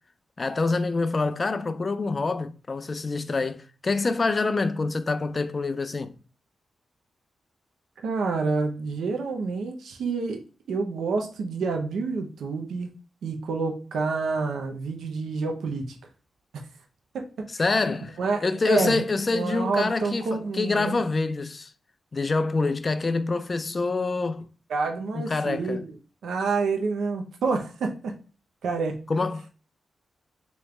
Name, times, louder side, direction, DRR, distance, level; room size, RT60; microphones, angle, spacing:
voice 1, 0.4-6.2 17.6-21.7 22.1-24.4 25.1-25.8 29.1-29.5, left 3 dB, 40° left, 0.4 m, -26 dB
voice 2, 8.0-12.9 13.2-16.0 17.1-17.5 18.2-19.1 19.3-21.0 24.7-26.0 26.2-28.1 28.6-29.0, right 4 dB, 85° right, 0.7 m, -28 dB
3.8 x 3.2 x 3.2 m
cardioid pair, 75°, 0 cm